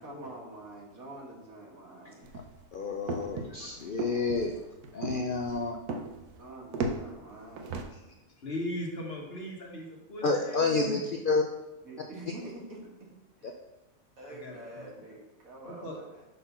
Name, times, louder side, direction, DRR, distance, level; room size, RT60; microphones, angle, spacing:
voice 1, 0.0-2.3 6.4-7.9 11.8-13.1 13.4-13.5 14.2-16.2, right 2 dB, 65° right, -2 dB, 2.0 m, -46 dB
sound 1, 2.2-7.8, right 3 dB, 85° right, 1.3 m, -37 dB
voice 2, 2.7-4.5 4.9-5.8 10.2-11.4, left 3 dB, 75° left, 3 dB, 0.4 m, -29 dB
voice 3, 8.4-11.0 14.2-14.9 15.6-16.0, left 1 dB, 45° left, -1 dB, 1.4 m, -39 dB
6.8 x 3.9 x 5.6 m, 0.98 s
omnidirectional pair, 1.6 m